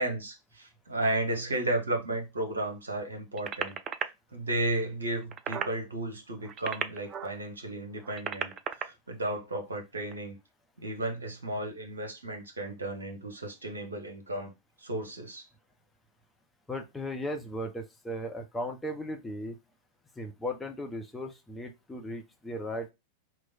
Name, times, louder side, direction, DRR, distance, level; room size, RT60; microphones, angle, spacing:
voice 1, 0.0-3.8 4.3-8.5 8.8-10.4 10.8-14.5 14.8-15.4, right 1 dB, 75° right, 0.9 m, -33 dB
sound 1, 3.4-4.0 5.2-5.8 6.4-7.4 8.0-8.8 10.0-10.2, right 8 dB, 30° right, 0.4 m, -34 dB
voice 2, 16.7-19.6 20.2-22.9, equal, 10° left, 0.7 m, -36 dB
3.1 x 2.1 x 3.9 m
figure-of-eight pair, 90°, 0 cm